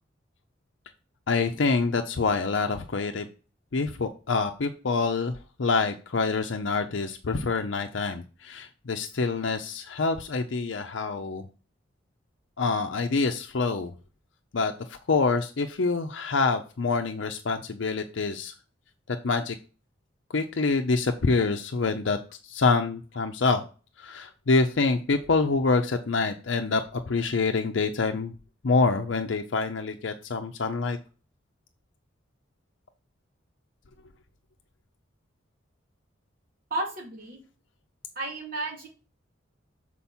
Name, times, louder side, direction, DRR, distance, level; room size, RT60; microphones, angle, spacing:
voice 1, 1.3-3.3 3.7-5.3 5.6-11.5 12.6-13.9 14.5-18.5 19.2-19.6 20.3-22.2 22.5-23.6 24.0-28.3 28.6-31.0, left 4 dB, 75° left, 5 dB, 0.6 m, -26 dB
voice 2, 36.7-37.4 38.1-38.9, right 2 dB, 50° right, -1 dB, 2.6 m, -32 dB
7.0 x 4.5 x 4.3 m, 0.35 s
head